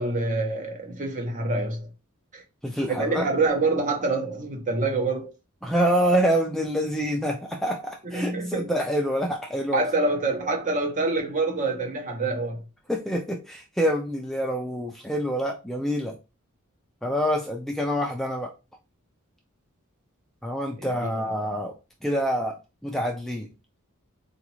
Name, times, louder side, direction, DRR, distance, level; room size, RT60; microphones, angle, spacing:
voice 1, 0.0-1.9 2.3-2.4 2.9-5.3 8.1-8.7 9.7-12.6 20.8-21.2, right 3 dB, 35° right, 0.8 m, -26 dB
voice 2, 2.6-3.3 5.6-9.8 12.9-16.2 17.0-18.5 20.4-21.7 22.0-22.6 22.8-23.5, equal, ahead, 0.4 m, -26 dB
3.9 x 2.4 x 3.0 m
head